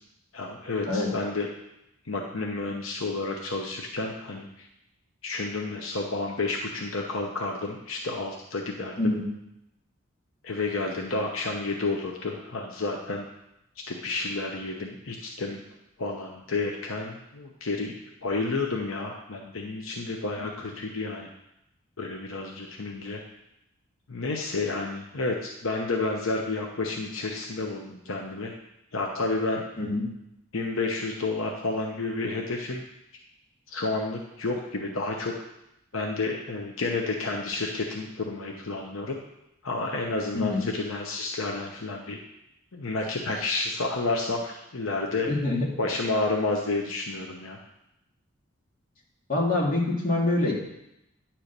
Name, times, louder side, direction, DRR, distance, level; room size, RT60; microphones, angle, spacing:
voice 1, 0.3-1.5 2.1-4.7 5.2-9.1 10.4-13.2 13.9-15.6 16.0-17.9 18.2-21.3 22.0-23.2 24.1-28.5 28.9-29.6 30.5-32.8 33.7-35.3 35.9-39.2 39.6-42.2 42.7-45.4 45.8-47.6, left 3 dB, 80° left, 1 dB, 0.9 m, -30 dB
voice 2, 45.3-45.7 49.3-50.5, left 2 dB, 40° left, -4 dB, 2.1 m, -25 dB
10.0 x 4.5 x 6.7 m, 0.85 s
head